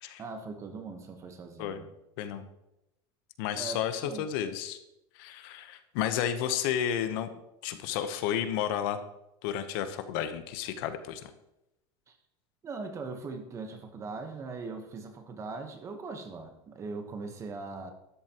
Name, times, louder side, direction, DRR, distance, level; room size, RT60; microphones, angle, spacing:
voice 1, 0.2-1.9 3.5-4.3 12.1-12.2 12.6-17.9, right 4 dB, 20° right, 6 dB, 1.1 m, -40 dB
voice 2, 2.2-2.5 3.4-4.8 5.1-7.3 7.6-9.0 9.4-11.3, left 9 dB, 60° left, 10 dB, 0.9 m, -32 dB
12.5 x 11.0 x 3.0 m, 0.89 s
supercardioid pair, 160°, 14 cm